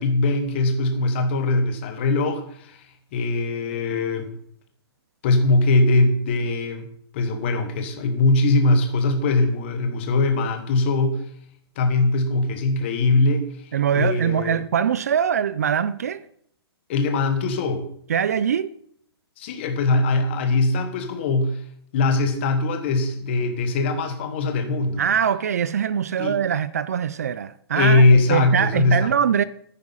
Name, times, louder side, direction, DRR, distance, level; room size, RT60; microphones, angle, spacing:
voice 1, 0.0-2.9 3.1-4.3 5.2-6.9 7.1-11.2 11.7-14.6 16.9-17.8 19.4-21.6 21.9-25.0 26.2-26.3 27.8-29.1, left 2 dB, 25° left, 1.4 m, -21 dB
voice 2, 13.7-16.3 18.1-18.8 25.0-29.4, right 8 dB, 35° right, 0.4 m, -23 dB
10.0 x 9.9 x 5.6 m
hypercardioid pair, 180°, 14 cm